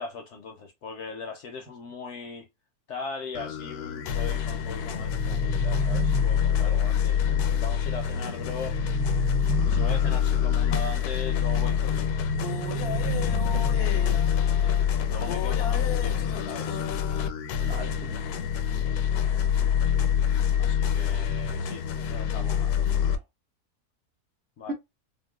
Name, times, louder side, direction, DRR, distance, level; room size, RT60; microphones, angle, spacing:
voice 1, 0.0-2.5 2.9-8.8 9.6-12.1 15.1-16.8 20.6-23.2 24.6-24.7, left 4 dB, 65° left, 0.7 m, -39 dB
sound 1, 3.3-23.2, left 8 dB, 85° left, 1.1 m, -26 dB
sound 2, 4.7-6.7 8.4-10.3 12.1-14.1, right 11 dB, 85° right, 1.1 m, -34 dB
voice 2, 7.2-7.7 13.5-14.2 17.6-18.3 24.7-24.8, right 4 dB, 65° right, 0.6 m, -39 dB
3.5 x 2.0 x 2.2 m
omnidirectional pair, 1.6 m